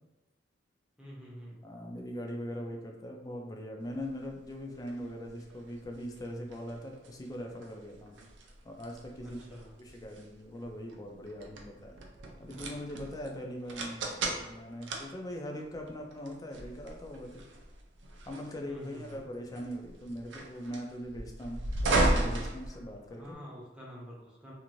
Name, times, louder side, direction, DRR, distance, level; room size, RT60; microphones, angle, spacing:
voice 1, 1.0-1.6 9.2-9.7 18.7-19.3 23.2-24.5, equal, 5° right, -5 dB, 0.7 m, -47 dB
voice 2, 1.6-8.2 8.6-9.4 9.8-11.9 12.4-17.4 18.3-23.4, equal, 20° left, 1 dB, 0.4 m, -41 dB
sound 1, 4.0-23.3, right 2 dB, 80° right, 0.5 m, -36 dB
2.6 x 2.5 x 3.0 m, 1.1 s
head